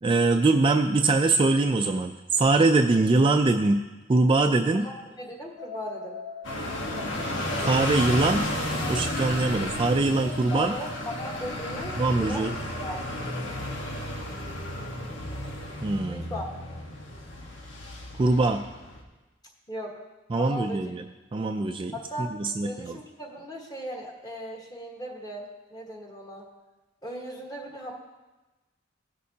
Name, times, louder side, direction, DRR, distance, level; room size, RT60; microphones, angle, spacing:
voice 1, 0.0-3.8 4.1-4.9 7.6-8.5 8.9-10.7 12.0-12.5 15.8-16.3 18.2-18.6 20.3-21.0 21.3-23.0, right 3 dB, 25° right, 5 dB, 0.3 m, -23 dB
voice 2, 4.7-6.2 10.5-12.5 12.8-13.0 16.1-16.5 19.7-20.0 20.4-20.9 21.9-22.4 22.6-26.5 27.0-27.9, equal, 20° left, -1 dB, 1.4 m, -37 dB
sound 1, 5.6-14.1, left 2 dB, 35° left, 0.8 m, -44 dB
sound 2, 6.4-19.0, left 1 dB, 80° left, 1.3 m, -33 dB
17.5 x 6.5 x 2.8 m, 1.1 s
head